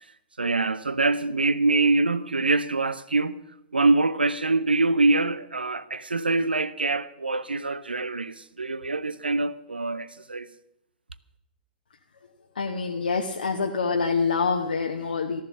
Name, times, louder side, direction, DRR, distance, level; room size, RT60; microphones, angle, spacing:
voice 1, 0.4-3.4 3.7-10.5, right 3 dB, 85° right, 0.6 m, -24 dB
voice 2, 12.6-15.4, left 4 dB, 70° left, 1.0 m, -26 dB
14.5 x 13.5 x 6.2 m
figure-of-eight pair, 110°, 5 cm